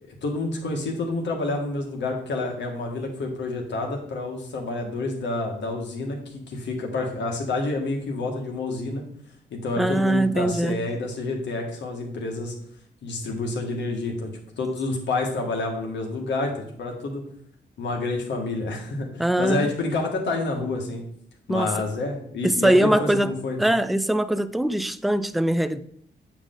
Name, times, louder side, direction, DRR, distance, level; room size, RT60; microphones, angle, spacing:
voice 1, 0.0-9.0 9.5-12.6 13.0-14.3 14.6-17.2 17.8-21.0 21.5-23.6, left 2 dB, 85° left, 1.8 m, -28 dB
voice 2, 9.8-10.8 19.2-19.7 21.5-21.7 22.4-23.3 23.6-25.8, right 1 dB, ahead, 0.3 m, -22 dB
8.4 x 4.9 x 3.8 m
cardioid pair, 110°, 18 cm